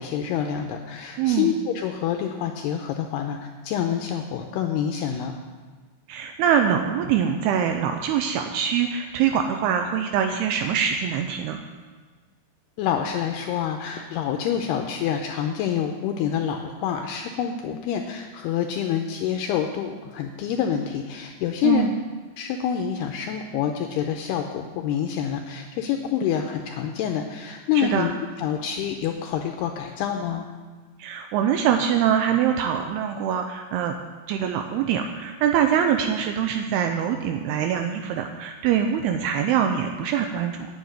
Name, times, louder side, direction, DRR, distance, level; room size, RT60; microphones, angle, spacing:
voice 1, 0.0-5.3 12.8-21.8 22.4-30.5, left 9 dB, 85° left, 4 dB, 2.4 m, -27 dB
voice 2, 1.2-1.5 6.1-11.6 21.6-21.9 27.8-28.1 31.0-34.0 34.3-40.7, right 8 dB, 90° right, 5 dB, 2.2 m, -24 dB
8.6 x 8.1 x 9.1 m, 1.4 s
omnidirectional pair, 5.3 m